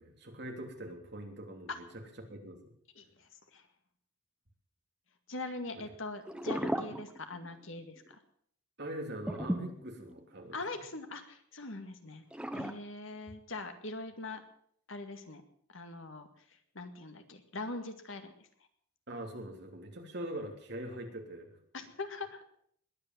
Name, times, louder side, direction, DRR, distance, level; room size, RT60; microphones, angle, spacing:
voice 1, 0.0-2.0 2.3-2.7 5.7-5.8 8.8-10.6 13.3-13.4 19.1-21.6, right 1 dB, 50° right, 2 dB, 3.2 m, -43 dB
voice 2, 3.0-3.6 5.3-8.2 10.5-12.2 12.5-14.4 14.9-15.4 15.7-16.3 16.8-18.3 21.7-22.4, left 2 dB, 70° left, 7 dB, 2.0 m, -42 dB
sound 1, 6.3-7.6 8.0-8.1 9.3-10.5 12.3-12.7, equal, 5° right, 1.0 m, -36 dB
21.0 x 8.8 x 7.5 m, 0.64 s
head